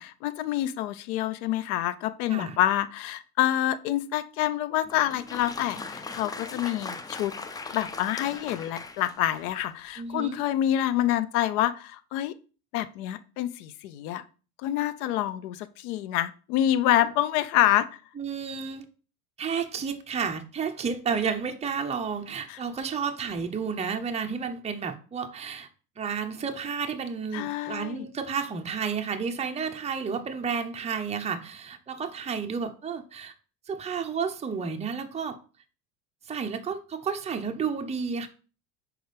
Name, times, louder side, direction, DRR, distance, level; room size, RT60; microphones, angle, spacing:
voice 1, 0.0-7.3 7.7-12.3 12.7-14.2 14.6-18.0 22.5-22.6 27.3-28.1, left 12 dB, 65° left, 0.8 m, -27 dB
Applause, 4.8-9.7, left 3 dB, 10° left, 0.3 m, -39 dB
voice 2, 10.0-10.4 18.2-18.8 19.4-25.7 26.0-33.3 33.7-35.4 36.3-38.3, right 6 dB, 15° right, 0.8 m, -31 dB
6.3 x 4.6 x 3.4 m
hypercardioid pair, 80°, 47 cm